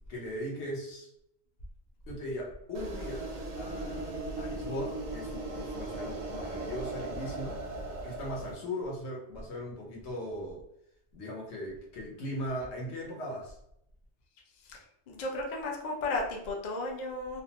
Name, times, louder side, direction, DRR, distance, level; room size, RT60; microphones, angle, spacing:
voice 1, 0.1-1.1 2.1-7.6 8.0-10.6 11.1-13.6, equal, 70° left, -2 dB, 1.1 m, -39 dB
sound 1, 2.7-8.5, right 2 dB, 55° right, 0.5 m, -38 dB
voice 2, 15.1-17.4, left 2 dB, 55° left, 0 dB, 0.5 m, -34 dB
2.6 x 2.1 x 2.8 m, 0.77 s
omnidirectional pair, 1.2 m